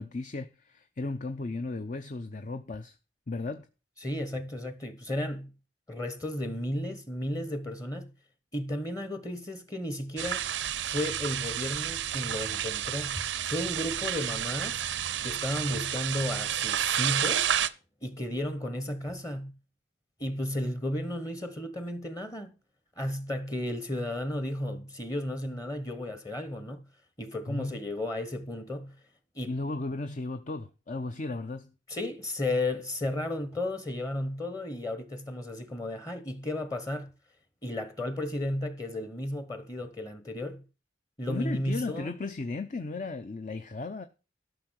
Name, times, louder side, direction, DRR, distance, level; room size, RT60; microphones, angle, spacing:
voice 1, 0.0-2.9 3.3-3.7 27.5-27.8 29.5-31.7 41.3-44.1, left 3 dB, 45° left, 0.6 m, -35 dB
voice 2, 4.0-5.5 5.9-8.1 8.5-10.4 10.8-14.8 15.2-17.5 18.0-19.5 20.2-22.5 23.0-26.8 27.2-28.9 29.3-29.6 31.9-37.1 37.6-40.6 41.2-42.1, left 1 dB, 20° left, 1.1 m, -33 dB
sound 1, 10.2-17.7, right 10 dB, 85° right, 0.6 m, -30 dB
12.5 x 5.9 x 6.3 m
head